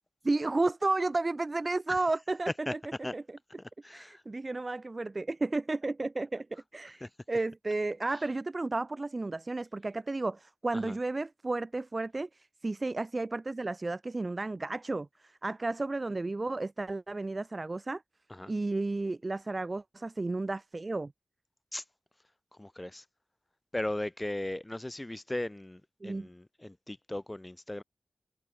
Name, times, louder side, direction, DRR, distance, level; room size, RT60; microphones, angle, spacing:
voice 1, 0.2-2.8 3.1-3.4 3.9-18.0 18.5-21.1 26.0-26.3, right 2 dB, 25° right, 0.6 m, -33 dB
voice 2, 3.6-4.2 7.0-7.1 8.1-8.2 10.7-11.0 18.3-18.5 21.7-21.8 22.6-23.0 23.7-27.8, left 1 dB, 15° left, 2.4 m, -37 dB
wide cardioid pair, 130°, 0 cm